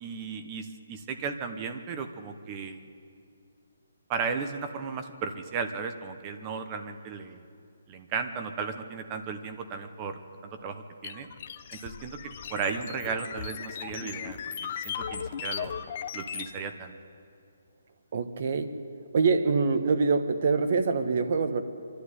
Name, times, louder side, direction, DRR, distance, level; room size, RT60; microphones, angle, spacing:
voice 1, 0.0-2.8 4.1-7.4 7.9-10.2 10.6-11.3 11.7-15.7 16.1-17.0, right 5 dB, 20° right, 7 dB, 1.0 m, -35 dB
sound 1, 11.0-16.5, left 8 dB, 35° left, 0.9 m, -37 dB
voice 2, 18.1-18.8 19.1-21.6, right 4 dB, 45° right, 9 dB, 1.4 m, -25 dB
24.5 x 12.0 x 9.7 m, 2.4 s
hypercardioid pair, 165°, 0 cm